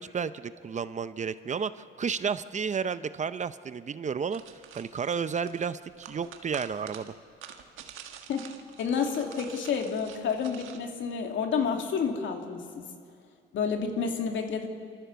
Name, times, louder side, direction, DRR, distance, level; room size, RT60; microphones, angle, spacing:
voice 1, 0.0-4.4 4.8-7.1, right 6 dB, 35° right, 14 dB, 0.7 m, -32 dB
sound 1, 4.3-10.8, right 9 dB, 90° right, 1.5 m, -47 dB
voice 2, 8.8-12.9 13.5-14.7, left 6 dB, 75° left, 4 dB, 2.4 m, -29 dB
28.0 x 14.0 x 6.9 m, 2.3 s
cardioid pair, 90°, 20 cm